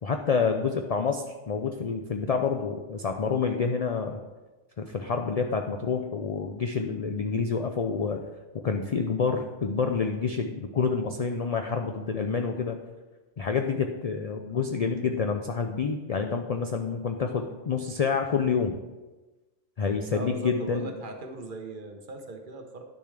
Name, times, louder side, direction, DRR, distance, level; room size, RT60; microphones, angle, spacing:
voice 1, 0.0-4.2 4.8-8.3 8.5-12.8 13.4-18.8 19.8-20.9, left 5 dB, 60° left, 5 dB, 0.4 m, -28 dB
voice 2, 20.1-22.8, right 2 dB, 50° right, 4 dB, 0.9 m, -38 dB
10.5 x 6.7 x 3.3 m, 1.2 s
omnidirectional pair, 1.2 m